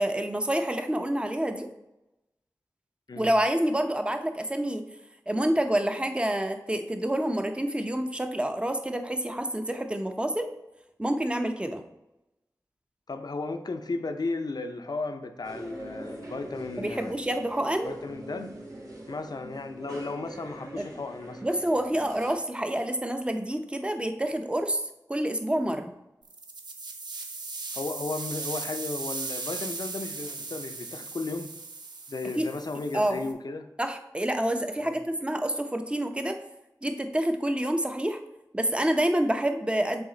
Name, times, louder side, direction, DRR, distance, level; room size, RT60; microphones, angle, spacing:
voice 1, 0.0-1.7 3.2-4.8 5.3-10.5 11.0-11.8 16.8-17.9 20.8-20.9 21.4-24.8 25.1-25.9 32.4-32.5 32.9-33.2 33.8-36.4 36.8-38.2 38.5-40.0, right 1 dB, 15° right, 6 dB, 0.6 m, -28 dB
voice 2, 13.1-17.2 17.8-18.5 19.1-21.4 27.8-31.5 32.1-33.7 34.8-35.0, left 3 dB, 70° left, 8 dB, 0.6 m, -34 dB
sound 1, 15.4-22.3, right 1 dB, 60° right, 1.5 m, -43 dB
sound 2, 26.2-33.3, right 3 dB, 85° right, 0.6 m, -38 dB
6.9 x 4.1 x 3.9 m, 0.93 s
wide cardioid pair, 65°, 7 cm